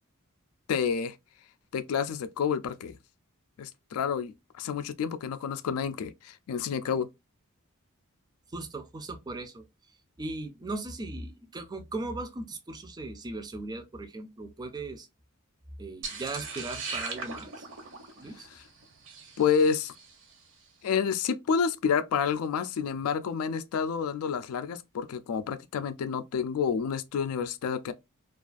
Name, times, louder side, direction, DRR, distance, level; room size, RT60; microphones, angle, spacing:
voice 1, 0.7-1.1 1.7-2.9 3.6-7.1 19.4-19.9 20.8-27.9, left 6 dB, 75° left, 0.3 m, -29 dB
voice 2, 8.5-9.6 10.2-15.1 15.8-17.7 18.2-18.5, right 2 dB, 20° right, 0.4 m, -38 dB
sound 1, 16.0-20.3, right 4 dB, 55° right, 0.7 m, -40 dB
2.4 x 2.3 x 2.3 m
head